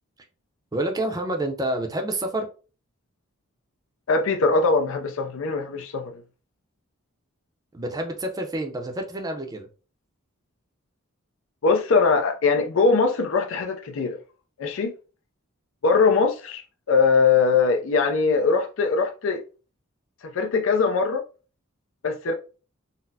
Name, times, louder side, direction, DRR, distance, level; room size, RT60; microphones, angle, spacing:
voice 1, 0.7-2.5 7.7-9.7, right 1 dB, 20° right, 0.5 m, -28 dB
voice 2, 4.1-6.2 11.6-14.2 14.6-14.9 15.8-19.4 20.2-21.2 22.0-22.3, left 4 dB, 65° left, 0.4 m, -21 dB
4.0 x 2.0 x 2.7 m
head